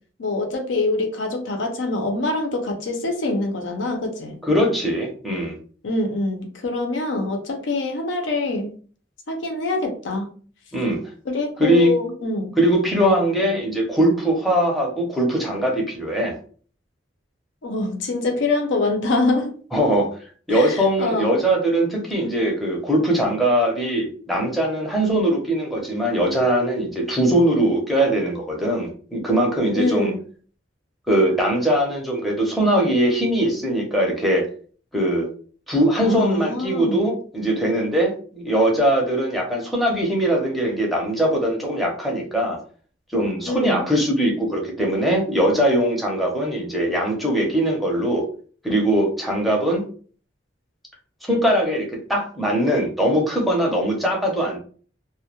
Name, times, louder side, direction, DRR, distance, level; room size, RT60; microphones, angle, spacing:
voice 1, 0.2-4.3 5.8-8.7 9.3-10.3 11.3-12.5 17.6-19.5 20.5-21.4 29.7-30.2 36.0-37.1 43.5-43.8, left 2 dB, 75° left, 3 dB, 0.5 m, -24 dB
voice 2, 4.4-5.6 10.7-11.0 11.6-11.9 12.6-16.3 19.7-20.1 20.5-30.1 31.1-34.4 34.9-35.3 35.7-42.6 43.1-48.2 48.6-49.8 51.3-54.6, right 1 dB, ahead, -1 dB, 0.6 m, -21 dB
2.2 x 2.1 x 2.8 m, 0.43 s
head